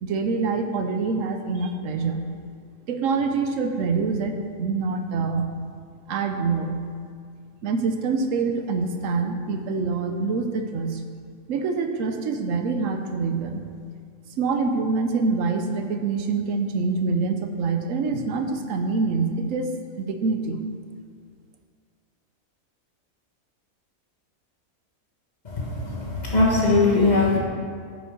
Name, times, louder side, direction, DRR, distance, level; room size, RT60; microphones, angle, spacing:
voice 1, 0.0-2.2 2.9-5.5 6.1-6.8 7.6-11.0 11.5-13.6 14.3-20.7, right 4 dB, 70° right, 6 dB, 1.1 m, -25 dB
voice 2, 25.4-27.4, left 3 dB, 30° left, -4 dB, 1.6 m, -20 dB
9.3 x 5.1 x 5.1 m, 2.1 s
omnidirectional pair, 1.4 m